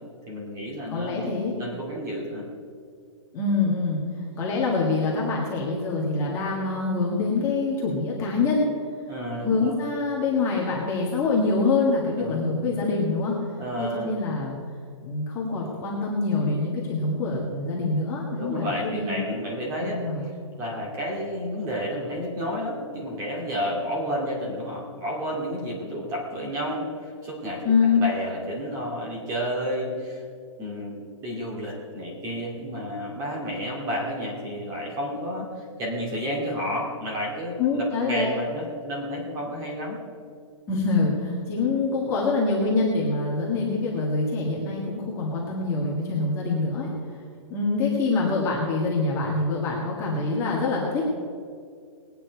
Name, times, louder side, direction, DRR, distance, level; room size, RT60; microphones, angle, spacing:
voice 1, 0.3-2.4 9.1-9.8 12.2-12.7 13.6-14.1 18.4-20.0 20.6-27.6 27.9-30.2 30.6-35.5 35.8-40.0, equal, 15° right, -2 dB, 2.5 m, -31 dB
voice 2, 0.9-1.5 3.3-4.0 4.3-8.7 9.4-13.4 13.8-14.6 15.0-19.2 19.8-20.2 27.6-28.0 37.6-38.3 40.7-46.9 47.5-51.1, left 3 dB, 15° left, -4 dB, 1.8 m, -25 dB
20.0 x 9.1 x 4.7 m, 2.2 s
hypercardioid pair, 165°, 17 cm